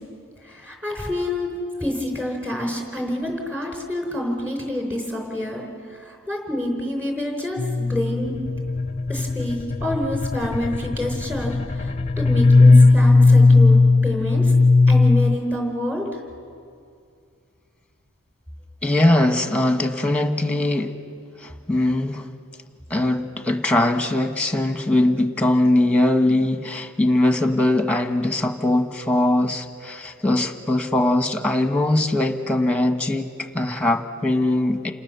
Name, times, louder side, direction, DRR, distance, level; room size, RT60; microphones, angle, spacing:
voice 1, 0.5-1.5 1.8-5.6 6.0-8.3 9.1-11.9 12.2-14.5 14.9-16.0, left 1 dB, 10° right, 2 dB, 4.6 m, -27 dB
sound 1, 7.6-15.4, left 3 dB, 25° left, 0.6 m, -17 dB
voice 2, 18.8-21.0 21.4-22.3 22.9-34.9, left 1 dB, 5° left, 6 dB, 1.3 m, -21 dB
29.5 x 26.5 x 6.9 m, 2.3 s
head